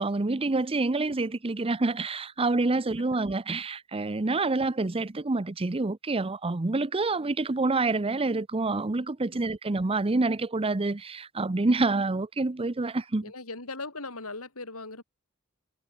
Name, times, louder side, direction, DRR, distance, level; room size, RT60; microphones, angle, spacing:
voice 1, 0.0-13.3, right 3 dB, 25° right, 0.7 m, -27 dB
voice 2, 13.2-15.0, left 3 dB, 80° left, 7.4 m, -39 dB
head